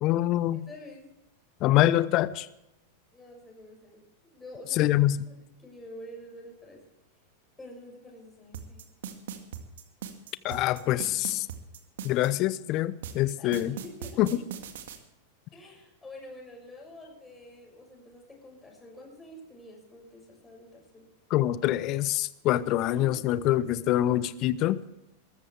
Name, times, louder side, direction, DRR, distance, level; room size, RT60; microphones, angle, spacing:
voice 1, 0.0-0.7 1.6-2.5 4.8-5.2 10.4-11.5 12.0-13.7 14.2-14.3 21.3-24.8, left 14 dB, 45° left, 17 dB, 0.8 m, -25 dB
voice 2, 0.5-1.1 3.1-5.0 5.6-6.8 7.6-8.8 13.4-14.2 15.5-21.0 22.9-23.2 24.1-24.2, left 1 dB, 10° left, -1 dB, 6.4 m, -47 dB
sound 1, 8.5-12.3 13.0-15.0, right 8 dB, 65° right, 2.0 m, -39 dB
21.5 x 14.0 x 3.4 m, 0.89 s
figure-of-eight pair, 95°, 0 cm